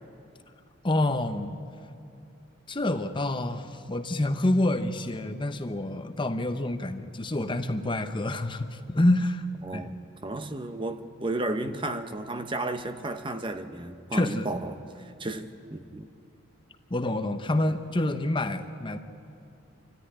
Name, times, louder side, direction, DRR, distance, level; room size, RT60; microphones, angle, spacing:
voice 1, 0.8-1.6 2.7-9.5 9.7-9.9 14.1-14.5 16.9-19.0, left 1 dB, 25° left, 8 dB, 0.7 m, -27 dB
voice 2, 10.2-14.8 15.2-16.1, right 2 dB, 25° right, 8 dB, 0.9 m, -33 dB
25.5 x 13.5 x 9.9 m, 2.6 s
head